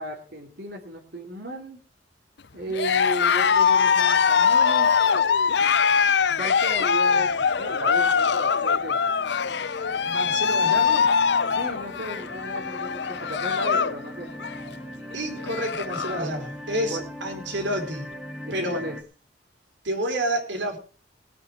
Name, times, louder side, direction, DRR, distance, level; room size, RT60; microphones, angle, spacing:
voice 1, 0.0-1.8 2.5-4.9 6.4-7.3 7.6-9.0 11.5-14.3 16.0-16.4 16.9-17.0 18.5-19.0, right 1 dB, 60° right, -1 dB, 2.8 m, -35 dB
Cheering, 2.7-14.0 14.3-14.7 15.1-15.2 15.4-16.2, left 6 dB, 65° left, 0.6 m, -22 dB
sound 1, 5.8-6.3 6.7-19.0, equal, 5° right, 1.7 m, -41 dB
voice 2, 10.0-11.1 15.1-18.1 18.5-18.8 19.8-20.8, right 1 dB, 80° right, 3 dB, 4.2 m, -29 dB
19.5 x 9.1 x 4.8 m, 0.38 s
head